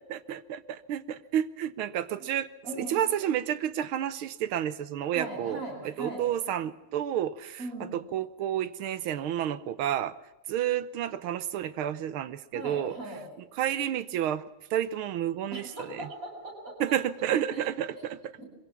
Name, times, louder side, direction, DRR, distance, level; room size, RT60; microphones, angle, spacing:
voice 1, 0.1-2.5 2.8-7.6 7.9-10.2 10.5-13.0 13.5-14.4 14.7-16.1 16.8-18.4, right 10 dB, 80° right, 15 dB, 1.7 m, -30 dB
voice 2, 2.6-3.0 5.1-6.2 7.6-8.0 12.5-13.2 15.5-16.8 18.0-18.1 18.4-18.5, right 1 dB, 40° right, 0 dB, 7.4 m, -39 dB
22.5 x 17.0 x 7.1 m, 1.0 s
omnidirectional pair, 2.3 m